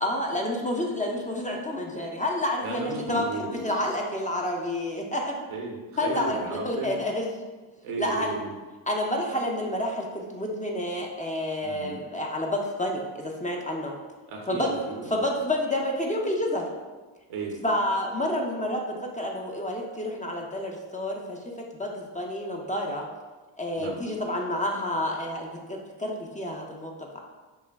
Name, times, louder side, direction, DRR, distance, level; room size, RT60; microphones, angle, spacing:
voice 1, 0.0-3.2 3.6-5.3 6.0-6.4 6.6-7.3 8.0-8.3 8.9-13.9 14.5-14.7 15.1-16.6 17.6-21.4 21.7-23.0 23.6-27.2, left 1 dB, 15° left, 0 dB, 0.6 m, -29 dB
voice 2, 2.6-3.6 5.5-7.0 7.8-8.5 11.6-12.0 14.3-15.2 17.3-17.6 23.8-24.0, right 3 dB, 75° right, 0 dB, 1.0 m, -34 dB
5.4 x 2.2 x 3.5 m, 1.3 s
supercardioid pair, 55°, 50 cm